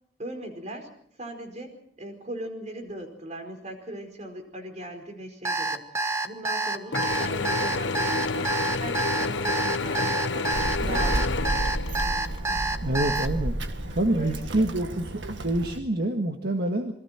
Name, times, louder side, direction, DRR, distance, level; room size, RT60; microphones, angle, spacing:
voice 1, 0.2-5.8 6.2-8.5 8.8-11.3 12.5-12.7 13.8-15.2, right 1 dB, 40° right, 5 dB, 4.9 m, -39 dB
Alarm, 5.4-13.3, right 3 dB, 15° right, 1.2 m, -27 dB
Mechanisms / Drill, 6.9-12.4, left 3 dB, 85° left, 0.9 m, -29 dB
Child speech kid speaking, 10.5-15.8, right 1 dB, 85° right, 1.8 m, -31 dB
voice 2, 12.8-13.5 13.9-16.9, right 1 dB, 60° right, 4 dB, 1.8 m, -27 dB
27.5 x 22.0 x 4.5 m, 0.66 s
head